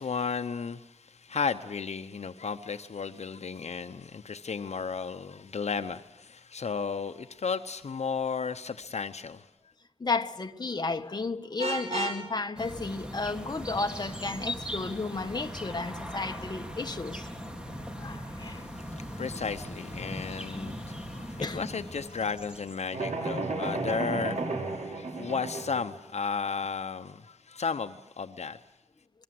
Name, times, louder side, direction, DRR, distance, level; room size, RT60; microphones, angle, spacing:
voice 1, 0.0-9.5 18.4-28.6, left 5 dB, 70° left, 0.9 m, -34 dB
voice 2, 10.0-17.3 17.9-18.6 21.4-21.6, left 3 dB, 35° left, 1.4 m, -33 dB
Vehicle horn car horn honking, 11.6-12.2, right 2 dB, 65° right, 6.1 m, -32 dB
sound 1, 12.6-22.9, equal, 10° right, 3.4 m, -39 dB
sound 2, 22.9-25.8, right 3 dB, 85° right, 6.6 m, -33 dB
26.0 x 22.0 x 7.8 m
wide cardioid pair, 105°, 12 cm